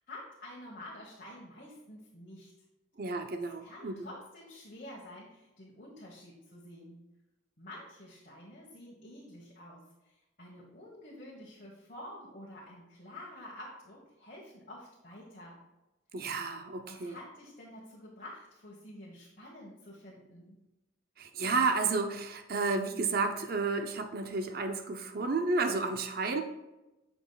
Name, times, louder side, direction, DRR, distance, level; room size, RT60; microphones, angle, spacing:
voice 1, 0.1-2.5 3.4-7.0 7.6-15.6 16.9-20.6, left 1 dB, 45° left, -4 dB, 1.4 m, -49 dB
voice 2, 3.0-4.1 16.1-17.2 21.2-26.4, right 3 dB, 45° right, 6 dB, 0.5 m, -31 dB
9.9 x 6.1 x 2.3 m, 1.0 s
head